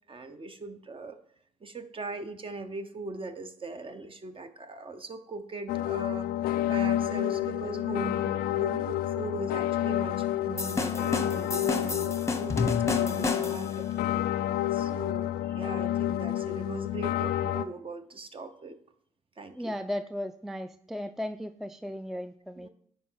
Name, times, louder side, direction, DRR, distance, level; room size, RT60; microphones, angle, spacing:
voice 1, 0.1-1.2 1.6-13.9 14.5-18.8 19.4-19.7 22.6-22.7, right 3 dB, 35° right, 9 dB, 1.0 m, -40 dB
sound 1, 5.7-17.6, left 12 dB, 85° left, 0.4 m, -29 dB
sound 2, 10.6-13.8, left 3 dB, 20° left, 0.9 m, -31 dB
voice 2, 19.6-22.7, left 1 dB, ahead, 11 dB, 0.3 m, -36 dB
10.0 x 4.4 x 3.9 m, 0.64 s
supercardioid pair, 60°, 15 cm